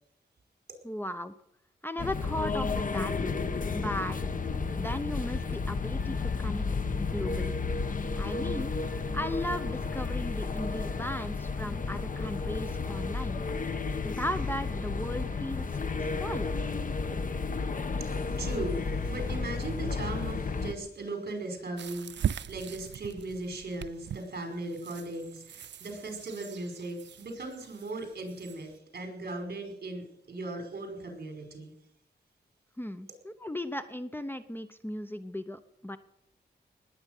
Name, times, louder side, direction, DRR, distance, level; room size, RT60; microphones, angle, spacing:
voice 1, 0.8-1.3 1.8-3.4 3.7-4.2 4.8-8.7 9.1-13.4 14.0-15.7 16.0-16.5 32.8-36.0, left 1 dB, 10° left, 10 dB, 0.8 m, -36 dB
sound 1, 2.0-20.7, left 4 dB, 50° left, 1.1 m, -32 dB
sound 2, 4.1-19.4, left 1 dB, 5° right, 7.6 m, -57 dB
voice 2, 18.0-31.7, right 2 dB, 60° right, 4 dB, 5.1 m, -38 dB
sound 3, 21.8-28.7, right 9 dB, 80° right, 0.5 m, -40 dB
20.0 x 8.9 x 6.6 m, 0.76 s
wide cardioid pair, 125°, 18 cm